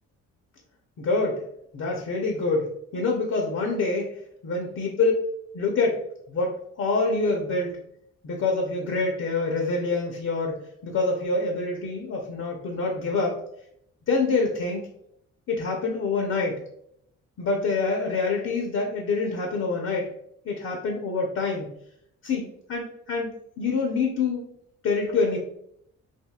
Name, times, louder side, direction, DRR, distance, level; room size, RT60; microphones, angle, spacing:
voice 1, 1.0-1.4 1.7-4.1 4.4-5.1 5.5-6.0 6.3-7.8 8.2-13.4 14.1-14.8 15.5-16.6 17.4-20.1 20.4-21.7 22.2-24.4 24.8-25.4, left 3 dB, 60° left, 1 dB, 0.8 m, -26 dB
4.4 x 2.6 x 2.3 m, 0.72 s
cardioid pair, 90°, 30 cm